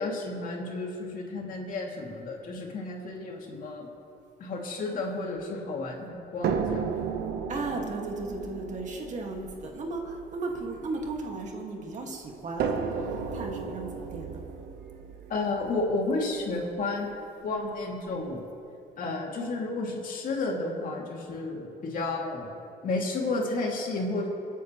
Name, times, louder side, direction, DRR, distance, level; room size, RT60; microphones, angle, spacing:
voice 1, 0.0-3.9 4.4-6.9 15.3-17.1 17.4-18.4 19.0-22.6 22.8-24.3, left 2 dB, 55° left, -1 dB, 2.7 m, -32 dB
sound 1, 6.4-11.7 12.6-16.6 17.5-17.6 18.1-18.2, right 6 dB, 70° right, 1.1 m, -34 dB
voice 2, 7.5-14.4, right 3 dB, 45° right, 1 dB, 2.0 m, -36 dB
25.5 x 9.4 x 3.2 m, 2.8 s
cardioid pair, 110°, 17 cm